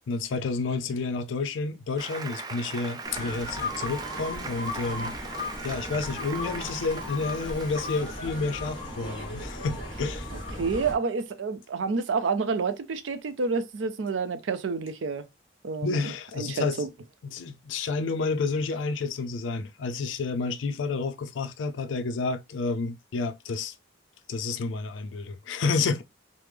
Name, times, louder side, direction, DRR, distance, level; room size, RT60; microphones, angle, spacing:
voice 1, 0.1-5.2 5.6-10.3 15.8-16.8 17.2-23.7 24.3-26.0, left 4 dB, 85° left, 0.4 m, -30 dB
Applause, 2.0-8.1, right 4 dB, 20° right, 0.4 m, -40 dB
sound 1, 3.0-10.9, left 1 dB, 25° left, 1.3 m, -36 dB
voice 2, 10.6-15.3 15.6-16.1 16.4-16.9, right 4 dB, 90° right, 0.5 m, -29 dB
3.2 x 2.0 x 3.2 m
head